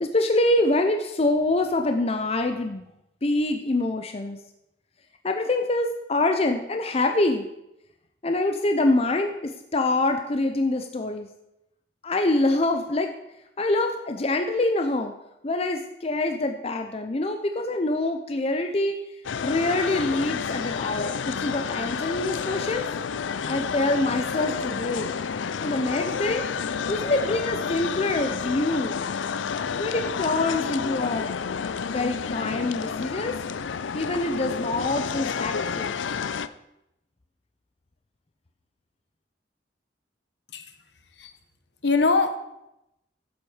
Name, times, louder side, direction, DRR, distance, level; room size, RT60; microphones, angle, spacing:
voice 1, 0.0-2.9 3.2-4.4 5.2-7.5 8.2-11.3 12.0-13.1 13.6-15.1 15.4-22.9 23.5-25.1 25.6-26.5 26.9-29.0 29.8-31.3 31.9-33.4 33.9-35.9, left 2 dB, 35° left, 5 dB, 0.6 m, -25 dB
sound 1, 19.2-36.5, left 6 dB, 85° left, 0.5 m, -30 dB
voice 2, 41.8-42.4, left 3 dB, 65° left, 8 dB, 1.0 m, -22 dB
11.5 x 7.4 x 4.9 m, 0.87 s
head